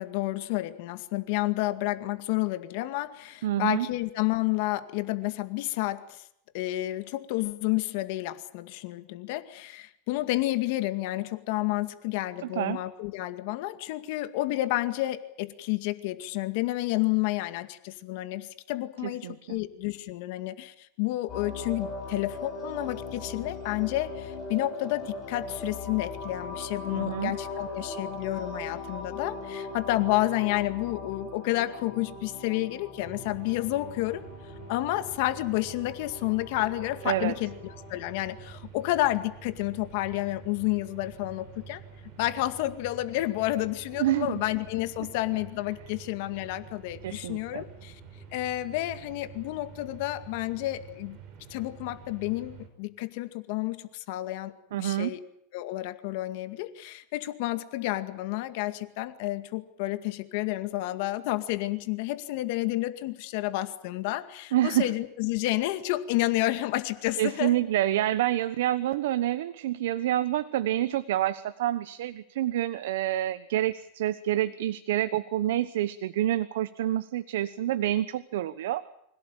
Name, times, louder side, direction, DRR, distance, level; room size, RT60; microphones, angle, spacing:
voice 1, 0.0-6.2 6.5-34.2 34.7-41.8 42.2-48.0 48.3-51.2 51.5-54.5 54.8-55.2 55.5-67.6, left 17 dB, 55° left, 10 dB, 2.0 m, -30 dB
voice 2, 3.4-3.9 12.4-12.8 19.0-19.6 26.9-27.3 37.0-37.3 44.0-44.3 47.0-47.6 54.7-55.1 64.5-64.9 67.2-78.8, right 13 dB, 80° right, 13 dB, 1.1 m, -28 dB
sound 1, 21.3-38.1, left 3 dB, 20° left, 7.9 m, -40 dB
sound 2, 33.0-52.7, right 7 dB, 40° right, 5.4 m, -48 dB
25.5 x 17.5 x 9.2 m, 0.76 s
supercardioid pair, 160°, 0 cm